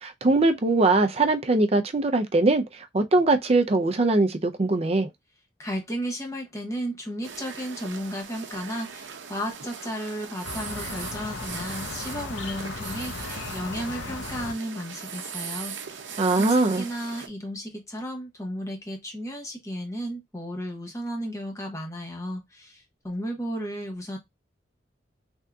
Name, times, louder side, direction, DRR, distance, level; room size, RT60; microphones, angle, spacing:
voice 1, 0.0-5.1 16.2-16.9, right 2 dB, 30° right, 0.4 m, -22 dB
voice 2, 5.6-16.1 16.4-24.2, equal, 15° left, 0.9 m, -34 dB
sound 1, 7.2-17.3, right 6 dB, 75° right, 0.7 m, -39 dB
sound 2, 10.4-14.5, left 4 dB, 75° left, 0.7 m, -36 dB
3.5 x 2.7 x 2.3 m
head